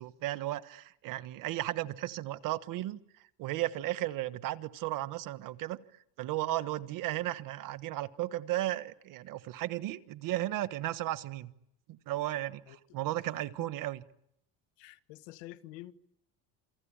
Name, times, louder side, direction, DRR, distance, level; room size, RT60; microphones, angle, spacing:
voice 1, 0.0-3.0 3.4-5.8 6.2-11.5 11.9-14.0, right 15 dB, 50° right, 1.3 m, -35 dB
voice 2, 12.2-13.0 14.8-15.9, left 16 dB, 85° left, 1.6 m, -49 dB
28.5 x 23.5 x 8.8 m
cardioid pair, 165°, 42 cm